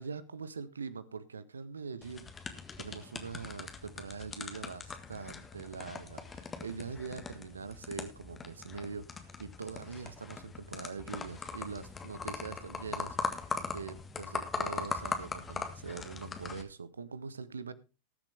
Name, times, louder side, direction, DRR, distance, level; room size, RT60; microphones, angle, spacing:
voice 1, 0.0-17.7, right 5 dB, 75° right, 0.9 m, -43 dB
sound 1, 2.0-16.6, left 4 dB, 15° left, 1.6 m, -40 dB
19.0 x 7.4 x 3.4 m
figure-of-eight pair, 90°, 0 cm